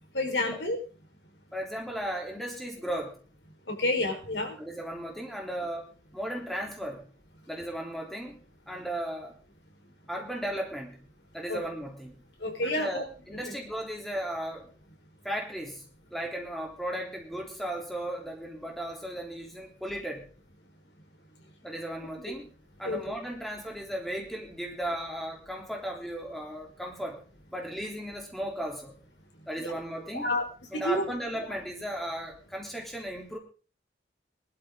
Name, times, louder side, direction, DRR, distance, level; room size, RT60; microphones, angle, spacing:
voice 1, 0.1-0.8 3.8-4.5 11.5-11.6 12.4-13.0 22.8-23.0 29.6-29.7 30.1-30.4 30.7-31.2, left 1 dB, 80° left, 3 dB, 4.5 m, -29 dB
voice 2, 1.5-3.2 4.6-7.0 7.5-8.4 8.7-9.4 10.1-11.0 11.3-12.2 12.6-14.7 15.2-15.8 16.1-20.3 21.6-22.5 22.8-27.2 27.5-28.9 29.5-30.3 30.7-33.4, right 1 dB, ahead, 0 dB, 3.2 m, -36 dB
21.0 x 12.0 x 3.8 m, 0.36 s
head